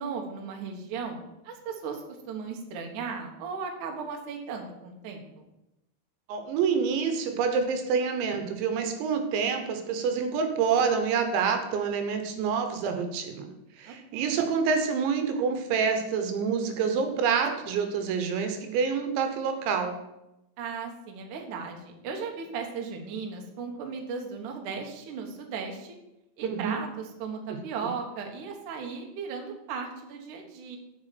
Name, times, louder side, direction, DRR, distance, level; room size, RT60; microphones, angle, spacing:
voice 1, 0.0-5.4 13.9-14.4 20.6-26.0 26.4-30.8, right 5 dB, 60° right, 2 dB, 2.2 m, -36 dB
voice 2, 6.3-13.5 13.8-20.0 26.5-26.8, right 6 dB, 80° right, 6 dB, 3.3 m, -27 dB
7.7 x 6.9 x 7.7 m, 0.90 s
omnidirectional pair, 5.3 m